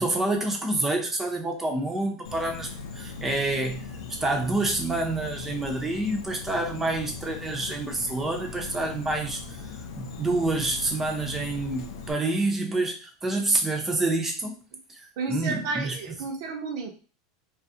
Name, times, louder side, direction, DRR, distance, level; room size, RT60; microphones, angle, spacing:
voice 1, 0.0-3.9 4.2-9.7 10.0-14.6 15.0-16.0, right 2 dB, 10° right, 3 dB, 0.4 m, -28 dB
Insect, 2.2-12.1, left 4 dB, 80° left, 0.5 m, -39 dB
voice 2, 15.2-16.9, right 4 dB, 65° right, 3 dB, 0.6 m, -32 dB
2.3 x 2.0 x 2.6 m, 0.37 s
supercardioid pair, 150°, 2 cm